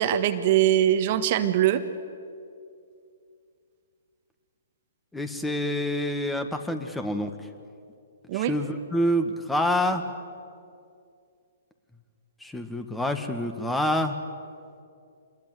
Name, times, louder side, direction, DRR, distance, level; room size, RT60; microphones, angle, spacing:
voice 1, 0.0-1.8 8.3-8.5, right 11 dB, 45° right, 9 dB, 1.5 m, -22 dB
voice 2, 5.1-7.3 8.3-10.0 12.4-14.2, left 1 dB, 5° left, 7 dB, 1.8 m, -27 dB
27.0 x 21.0 x 8.1 m, 2.4 s
figure-of-eight pair, 125°, 0 cm